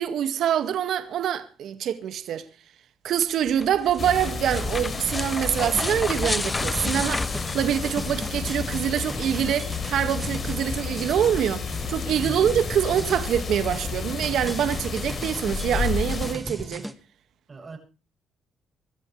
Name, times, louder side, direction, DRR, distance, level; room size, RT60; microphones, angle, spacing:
voice 1, 0.0-2.5 3.0-7.3 7.5-16.9, right 9 dB, 75° right, 1.9 m, -25 dB
sound 1, 3.5-8.4, left 2 dB, 20° left, 1.1 m, -31 dB
sound 2, 4.0-16.4, left 5 dB, 45° left, 4.2 m, -31 dB
sound 3, 6.7-16.9, equal, ahead, 1.8 m, -38 dB
voice 2, 12.2-12.6 17.5-17.8, right 4 dB, 35° right, 7.6 m, -40 dB
25.5 x 13.5 x 3.3 m
cardioid pair, 90°, 0 cm